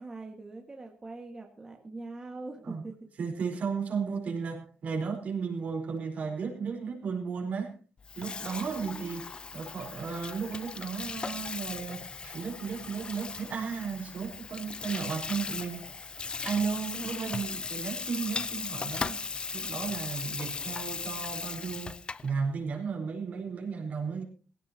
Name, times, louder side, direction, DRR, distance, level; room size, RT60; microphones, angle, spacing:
voice 1, 0.0-3.0 8.8-9.3 16.9-17.5, right 3 dB, 25° right, 2 dB, 1.9 m, -42 dB
voice 2, 3.2-7.7 8.1-9.3 9.5-15.8 16.4-24.2, right 5 dB, 55° right, 2 dB, 4.6 m, -34 dB
Water tap faucet / Sink (filling or washing), 8.0-22.3, left 4 dB, 30° left, 0.6 m, -38 dB
18.5 x 16.5 x 3.0 m, 0.38 s
cardioid pair, 110°, 3 cm